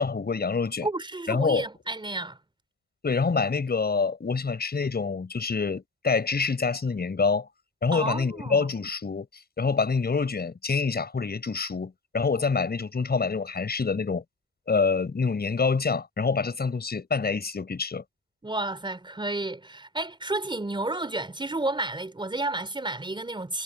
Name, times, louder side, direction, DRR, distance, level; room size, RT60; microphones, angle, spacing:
voice 1, 0.0-0.9 1.3-1.6 3.0-7.5 7.8-14.2 14.7-18.0, left 4 dB, 30° left, 6.4 m, -26 dB
voice 2, 0.8-2.4 7.9-8.7 18.4-23.6, right 2 dB, 15° right, 3.8 m, -31 dB
cardioid pair, 90°, 30 cm